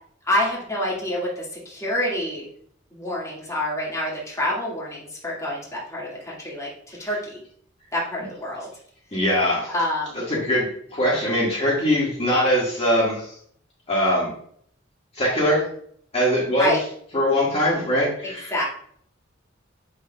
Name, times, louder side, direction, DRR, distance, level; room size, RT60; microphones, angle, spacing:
voice 1, 0.3-2.4 2.9-7.4 7.9-8.7 9.7-10.2 16.6-16.8 18.5-18.6, left 1 dB, 15° left, -6 dB, 1.9 m, -27 dB
voice 2, 9.1-9.7 10.1-13.4 13.9-14.3 15.2-15.6 16.1-16.8 17.1-18.6, equal, 30° left, -5 dB, 1.8 m, -22 dB
7.2 x 6.4 x 2.3 m, 0.63 s
head